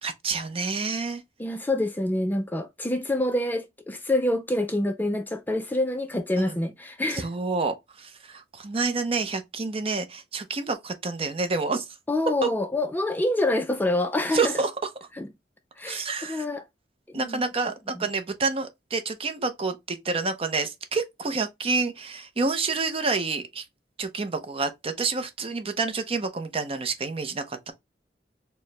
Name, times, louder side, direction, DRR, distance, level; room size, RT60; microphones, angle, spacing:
voice 1, 0.0-1.2 6.4-6.6 7.1-11.8 14.3-14.7 15.9-16.5 17.1-23.7 24.0-27.7, right 4 dB, 35° right, 0.6 m, -28 dB
voice 2, 1.4-7.3 12.1-14.5 15.2-15.3 15.8-16.6 17.1-17.4 18.0-18.1, left 1 dB, 10° left, 0.4 m, -26 dB
4.4 x 2.1 x 3.2 m
head